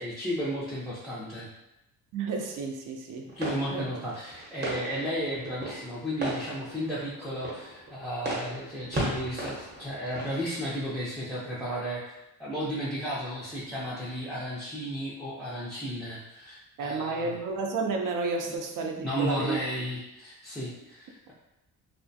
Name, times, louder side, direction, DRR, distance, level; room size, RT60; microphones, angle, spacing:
voice 1, 0.0-1.5 3.4-12.1 12.4-17.3 19.0-21.3, equal, ahead, -9 dB, 0.4 m, -34 dB
voice 2, 2.1-3.9 16.8-19.6, right 4 dB, 60° right, 2 dB, 0.5 m, -32 dB
sound 1, 3.3-11.0, right 1 dB, 30° right, 0.8 m, -37 dB
2.4 x 2.1 x 2.6 m, 0.91 s
cardioid pair, 105°, 37 cm